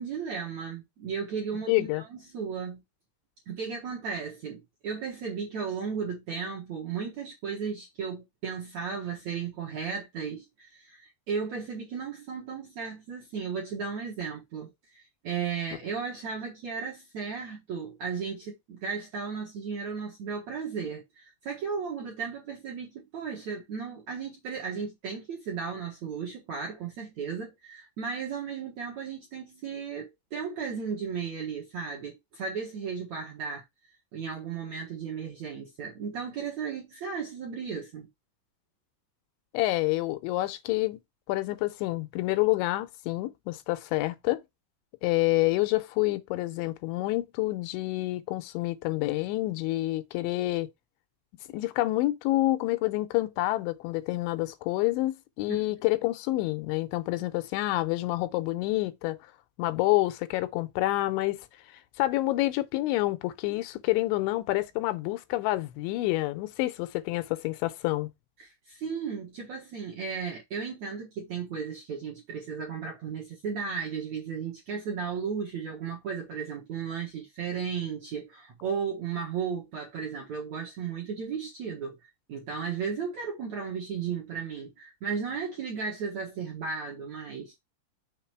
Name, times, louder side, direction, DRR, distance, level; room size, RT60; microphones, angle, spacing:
voice 1, 0.0-2.8 3.5-33.6 34.1-38.1 55.5-55.6 68.4-87.6, right 6 dB, 65° right, 1.8 m, -35 dB
voice 2, 1.7-2.0 39.5-41.0 41.3-44.4 45.0-50.7 51.5-59.2 59.6-61.4 62.0-68.1, left 18 dB, 90° left, 3.1 m, -28 dB
6.7 x 3.9 x 4.5 m
omnidirectional pair, 5.3 m